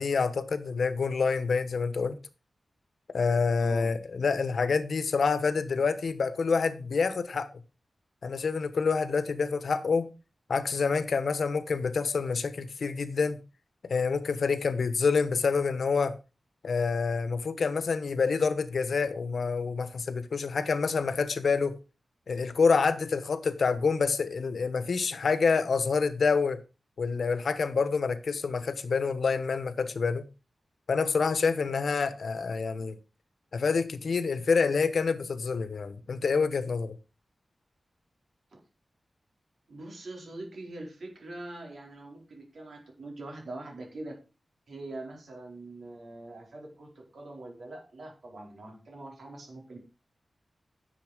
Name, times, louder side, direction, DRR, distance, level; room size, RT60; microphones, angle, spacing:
voice 1, 0.0-2.1 3.1-7.5 8.2-10.1 10.5-13.4 13.8-16.1 16.6-21.8 22.3-26.6 27.0-30.2 30.9-33.0 33.5-36.9, left 5 dB, 75° left, 1.1 m, -27 dB
voice 2, 3.6-3.9 38.5-38.6 39.7-44.2 44.7-49.8, right 2 dB, 75° right, 4.6 m, -43 dB
11.0 x 7.1 x 5.1 m
wide cardioid pair, 105°, 0 cm